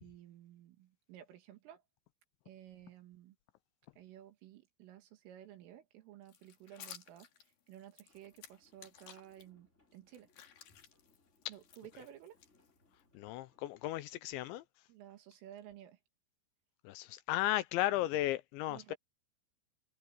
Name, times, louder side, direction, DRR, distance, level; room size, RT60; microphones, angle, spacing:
voice 1, 0.0-1.8 2.5-3.4 4.0-7.3 7.7-10.3 11.5-12.4 14.9-16.0 18.7-19.0, right 11 dB, 85° right, 4.7 m, -54 dB
sound 1, 6.3-9.4 9.9-13.0, left 9 dB, 55° left, 3.4 m, -56 dB
sound 2, 8.1-14.1, left 3 dB, 15° left, 4.6 m, -73 dB
voice 2, 13.1-14.6 16.8-18.9, left 15 dB, 80° left, 2.8 m, -35 dB
omnidirectional pair, 5.6 m